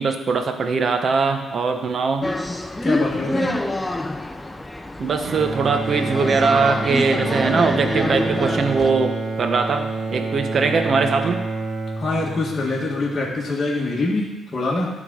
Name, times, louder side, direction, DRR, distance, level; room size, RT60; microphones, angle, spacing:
voice 1, 0.0-2.2 5.0-11.4, right 4 dB, 50° right, 6 dB, 1.0 m, -21 dB
sound 1, 2.2-8.9, left 1 dB, 10° left, 0.6 m, -26 dB
voice 2, 2.8-3.7 12.0-15.0, left 2 dB, 35° left, -4 dB, 1.8 m, -25 dB
Bowed string instrument, 5.2-13.5, right 3 dB, 65° right, 1.4 m, -28 dB
11.5 x 3.8 x 6.4 m, 1.1 s
cardioid pair, 90°, 0 cm